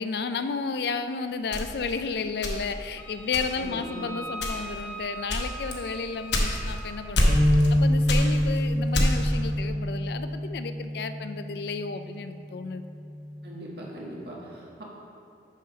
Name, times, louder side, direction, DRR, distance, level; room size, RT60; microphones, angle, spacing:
voice 1, 0.0-7.4 7.7-12.8, left 5 dB, 65° left, 10 dB, 0.4 m, -32 dB
sound 1, 1.5-2.9 3.3-3.8 4.3-4.8 5.3-6.8 7.1-7.8 8.0-9.4, left 1 dB, 85° left, 1.0 m, -25 dB
Wind instrument woodwind instrument, 3.0-7.0, right 1 dB, 15° left, 0.8 m, -41 dB
voice 2, 3.5-4.1 13.4-14.8, right 1 dB, 65° right, -4 dB, 1.5 m, -40 dB
sound 2, 7.3-11.5 12.0-12.2 13.1-13.5, equal, 20° right, 1.0 m, -26 dB
6.5 x 5.6 x 5.2 m, 2.5 s
head